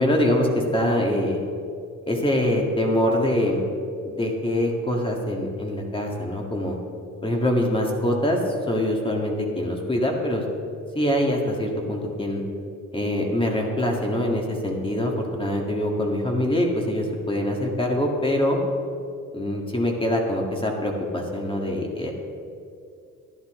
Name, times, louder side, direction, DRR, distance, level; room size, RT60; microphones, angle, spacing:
voice 1, 0.0-1.4 2.1-3.6 4.0-6.8 7.2-8.4 8.7-10.4 11.0-12.4 12.9-18.6 19.3-22.1, left 1 dB, 15° left, 0 dB, 1.8 m, -24 dB
11.5 x 11.0 x 3.7 m, 2.4 s
cardioid pair, 90°, 30 cm